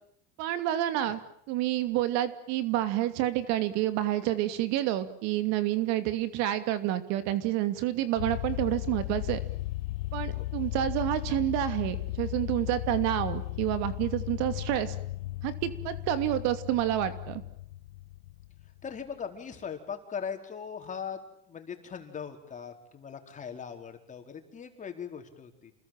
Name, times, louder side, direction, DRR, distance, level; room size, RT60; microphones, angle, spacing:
voice 1, 0.4-1.2 1.5-9.4 10.1-15.0 15.4-17.4, right 13 dB, 65° right, 11 dB, 2.8 m, -29 dB
sound 1, 8.2-18.8, left 18 dB, 85° left, 1.2 m, -36 dB
voice 2, 18.8-21.2 21.5-25.7, left 7 dB, 25° left, 5 dB, 4.6 m, -40 dB
29.0 x 21.0 x 9.1 m, 0.69 s
supercardioid pair, 130°, 29 cm